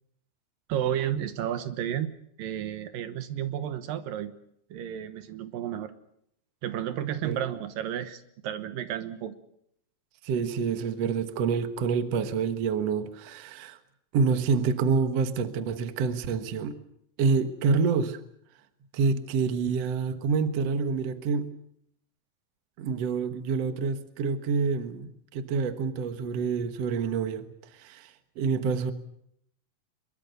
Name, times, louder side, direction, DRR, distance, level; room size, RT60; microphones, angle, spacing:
voice 1, 0.7-2.1 2.4-4.3 4.7-5.9 6.6-9.3, right 10 dB, 75° right, 11 dB, 2.8 m, -32 dB
voice 2, 10.2-13.8 14.1-16.8 17.2-18.2 18.9-21.5 22.8-27.5 27.7-28.9, right 5 dB, 55° right, 9 dB, 2.1 m, -27 dB
24.0 x 22.5 x 6.8 m, 0.73 s
omnidirectional pair, 4.0 m